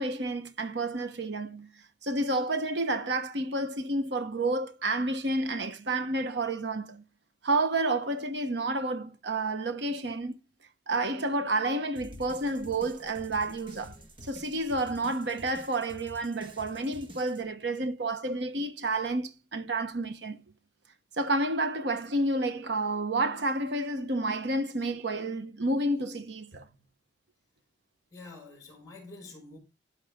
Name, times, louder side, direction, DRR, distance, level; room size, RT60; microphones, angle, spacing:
voice 1, 0.0-1.7 2.0-7.0 7.4-10.3 10.9-14.0 14.2-20.4 21.2-26.6, right 2 dB, 75° right, 1.2 m, -30 dB
sound 1, 12.0-17.4, equal, 30° right, 1.9 m, -49 dB
voice 2, 28.1-29.6, left 3 dB, 20° left, 6.0 m, -47 dB
15.0 x 6.5 x 3.7 m
head